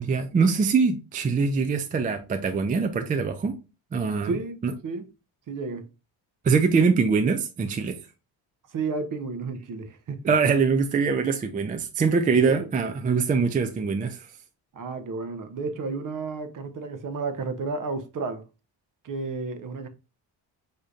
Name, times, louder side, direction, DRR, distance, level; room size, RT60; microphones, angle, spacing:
voice 1, 0.0-3.5 3.9-4.3 4.6-4.7 6.4-8.0 10.2-14.3, right 5 dB, 20° right, 0.3 m, -23 dB
voice 2, 4.2-5.1 5.5-5.9 8.7-10.3 14.7-18.4 19.0-19.9, right 4 dB, 45° right, 0.7 m, -32 dB
5.0 x 2.7 x 2.3 m
cardioid pair, 85°, 45 cm